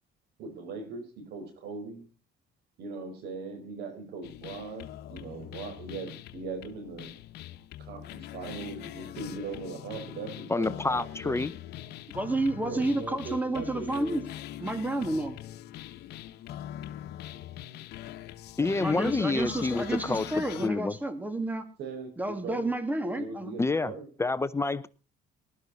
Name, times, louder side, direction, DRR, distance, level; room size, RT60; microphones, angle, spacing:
voice 1, 0.4-2.0 2.8-7.1 7.8-11.4 12.6-14.2 18.6-19.4 21.8-22.2 22.4-22.7 23.1-24.1, right 4 dB, 75° right, 4.7 m, -40 dB
sound 1, 4.2-20.7, left 12 dB, 75° left, 1.2 m, -43 dB
voice 2, 10.5-11.5 18.6-20.3 20.6-20.9 23.6-23.9 24.2-24.9, left 3 dB, 15° left, 0.6 m, -28 dB
voice 3, 12.1-14.2 14.6-15.4 18.8-21.6 22.2-23.6, right 2 dB, 10° right, 2.3 m, -30 dB
19.5 x 12.0 x 4.1 m
cardioid pair, 110°, 17 cm